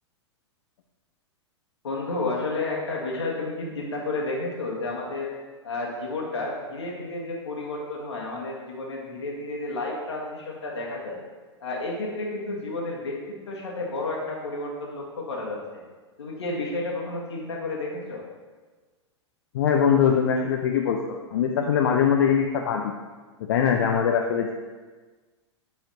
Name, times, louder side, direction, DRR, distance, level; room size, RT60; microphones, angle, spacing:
voice 1, 1.8-5.3 5.6-11.2 11.6-15.8 16.2-18.2, left 2 dB, 70° left, -2 dB, 1.5 m, -31 dB
voice 2, 19.5-22.9 23.5-24.5, left 7 dB, 50° left, 2 dB, 0.5 m, -22 dB
8.5 x 5.0 x 2.9 m, 1.4 s
figure-of-eight pair, 100°, 15 cm